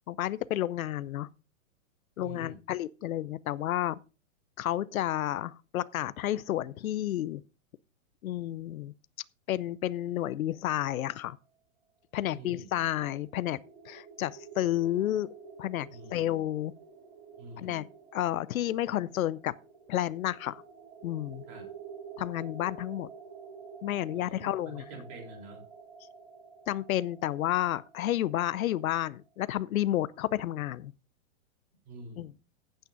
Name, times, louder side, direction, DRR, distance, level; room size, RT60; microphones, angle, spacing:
voice 1, 0.1-1.3 2.2-4.0 4.6-7.4 8.2-8.9 9.5-11.4 12.1-13.6 13.9-15.3 15.6-16.7 17.6-19.5 19.9-20.6 21.0-21.4 22.2-23.1 23.8-24.9 26.7-30.9 32.2-32.3, left 13 dB, 85° left, 0.7 m, -31 dB
voice 2, 2.2-2.7 12.3-12.8 15.9-16.3 17.4-17.8 21.5-21.7 24.1-25.6 31.8-32.4, right 2 dB, 25° right, 3.7 m, -47 dB
sound 1, 12.4-29.1, right 5 dB, 45° right, 3.8 m, -50 dB
15.5 x 9.0 x 2.6 m
hypercardioid pair, 180°, 41 cm